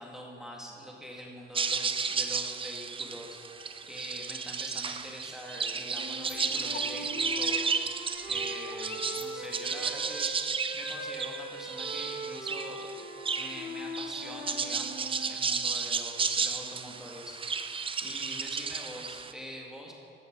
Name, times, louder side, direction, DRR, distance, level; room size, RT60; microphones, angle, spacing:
voice 1, 0.0-10.3 10.7-13.0 13.4-19.9, equal, 5° right, -2 dB, 1.9 m, -44 dB
sound 1, 1.5-19.3, right 5 dB, 25° right, 0.5 m, -33 dB
Wind instrument woodwind instrument, 5.8-10.2 10.5-15.4, right 1 dB, 75° right, 2.3 m, -41 dB
sound 2, 6.3-9.9, left 7 dB, 60° left, 0.8 m, -47 dB
13.5 x 7.1 x 5.1 m, 2.9 s
cardioid pair, 90°, 20 cm